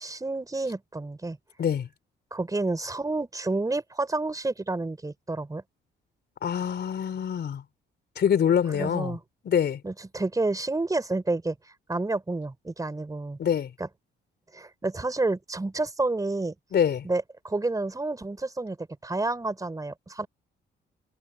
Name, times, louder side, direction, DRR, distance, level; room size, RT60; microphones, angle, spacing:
voice 1, 0.0-1.4 2.3-5.6 8.7-9.2 9.8-11.5 11.9-13.4 13.8-13.9 14.5-16.5 17.0-20.3, right 2 dB, 15° right, 4.4 m, -29 dB
voice 2, 6.4-7.6 8.2-9.2 9.4-9.8 13.4-13.7 16.7-17.1, left 8 dB, 60° left, 3.9 m, -25 dB
cardioid pair, 90°, 20 cm